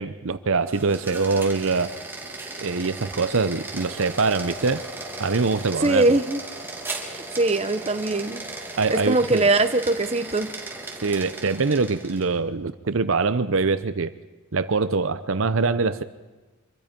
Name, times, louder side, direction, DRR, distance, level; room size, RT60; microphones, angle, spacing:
voice 1, 0.0-2.0 2.6-4.8 5.2-6.2 8.8-9.4 11.0-14.1 14.5-16.0, right 4 dB, 65° right, 12 dB, 0.7 m, -24 dB
sound 1, 0.6-12.3, right 2 dB, 10° right, 2.5 m, -37 dB
voice 2, 5.8-6.4 7.1-8.4 8.9-10.5, right 2 dB, 30° right, 9 dB, 1.0 m, -21 dB
26.0 x 23.0 x 5.3 m, 1.2 s
head